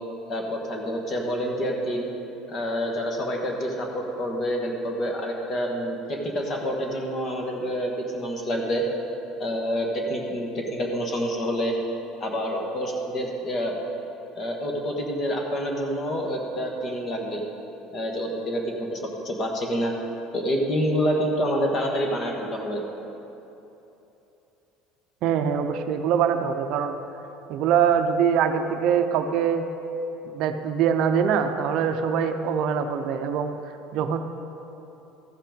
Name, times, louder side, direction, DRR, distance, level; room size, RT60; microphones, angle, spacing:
voice 1, 0.3-2.1 2.5-8.8 9.4-11.8 12.2-13.8 14.3-17.4 17.9-18.6 18.9-19.9 20.3-22.8, equal, 35° left, 1 dB, 1.4 m, -27 dB
voice 2, 25.2-27.0 27.5-29.7 30.2-33.6 33.9-34.2, right 7 dB, 60° right, 7 dB, 0.6 m, -23 dB
14.0 x 5.7 x 5.1 m, 3.0 s
cardioid pair, 145°, 0 cm